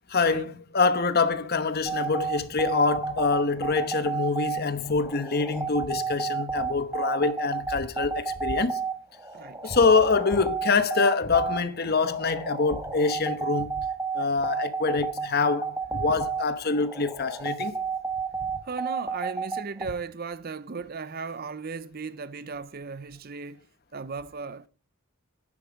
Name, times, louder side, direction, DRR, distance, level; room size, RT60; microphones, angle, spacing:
voice 1, 0.1-8.8 9.6-13.9 14.1-17.8, left 4 dB, 45° left, 1.0 m, -25 dB
sound 1, 1.9-19.9, right 5 dB, 15° right, 1.4 m, -31 dB
voice 2, 9.3-9.8 18.6-23.6 23.9-24.7, right 4 dB, 45° right, 0.6 m, -36 dB
10.5 x 9.9 x 5.1 m
head